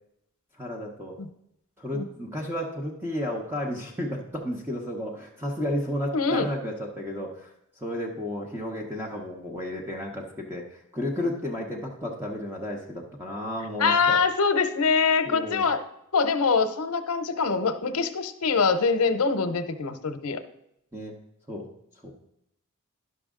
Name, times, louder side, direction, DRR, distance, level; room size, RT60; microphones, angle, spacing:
voice 1, 0.6-1.2 1.8-7.5 7.8-14.2 15.3-15.7 20.9-21.2 21.5-21.7 22.0-22.1, left 1 dB, 10° right, -1 dB, 0.8 m, -32 dB
voice 2, 6.1-6.5 13.8-15.8 16.1-20.4, left 5 dB, 85° left, 9 dB, 0.8 m, -24 dB
11.0 x 6.1 x 3.7 m, 0.78 s
head